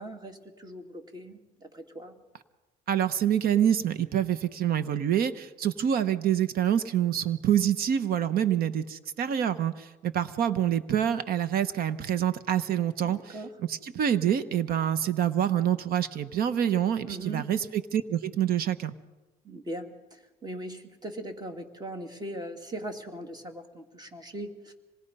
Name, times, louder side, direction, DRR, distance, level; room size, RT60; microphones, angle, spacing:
voice 1, 0.0-2.2 13.0-13.5 17.0-17.5 19.4-24.7, right 1 dB, 25° right, 5 dB, 2.6 m, -40 dB
voice 2, 2.9-13.4 13.7-18.9, right 10 dB, 60° right, 14 dB, 1.0 m, -26 dB
26.0 x 20.0 x 5.5 m, 1.1 s
cardioid pair, 110°, 17 cm